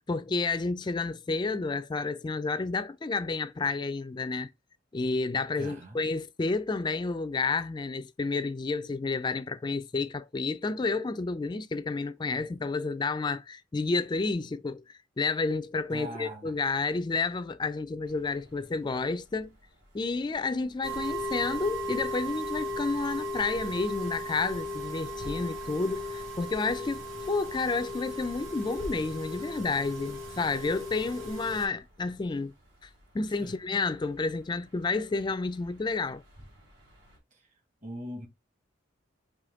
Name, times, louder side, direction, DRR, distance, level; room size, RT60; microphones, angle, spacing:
voice 1, 0.1-4.5 4.9-19.5 19.9-32.5 32.8-32.9 33.1-36.2, left 3 dB, 20° left, 0.3 m, -30 dB
voice 2, 5.6-6.0 15.9-16.5 33.4-33.6 37.3-37.4 37.8-38.3, right 1 dB, 40° right, 1.4 m, -40 dB
sound 1, 18.0-37.2, equal, 60° right, 3.0 m, -54 dB
sound 2, 20.8-31.7, equal, 80° right, 1.9 m, -37 dB
5.0 x 2.6 x 3.7 m
head